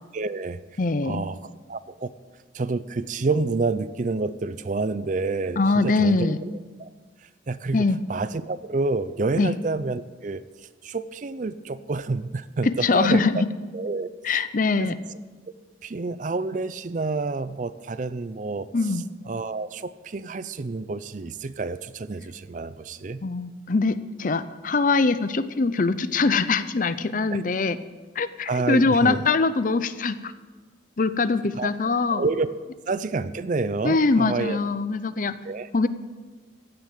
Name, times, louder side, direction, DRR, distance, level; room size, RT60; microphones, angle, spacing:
voice 1, 0.1-0.6 1.0-1.4 1.7-2.1 2.5-6.9 7.5-13.5 13.7-14.1 14.8-15.2 15.8-18.7 19.3-23.2 27.3-27.4 28.5-29.3 31.5-31.7 32.1-32.5 32.9-34.6 35.4-35.7, right 3 dB, 40° right, 15 dB, 0.5 m, -29 dB
voice 2, 0.8-1.2 5.6-6.4 7.7-8.0 9.4-9.5 12.7-13.5 14.2-14.9 18.7-19.0 23.2-27.8 28.2-30.3 31.0-32.2 33.8-35.3 35.7-35.9, left 3 dB, 45° left, 14 dB, 0.5 m, -22 dB
15.0 x 6.8 x 9.2 m, 1.4 s
head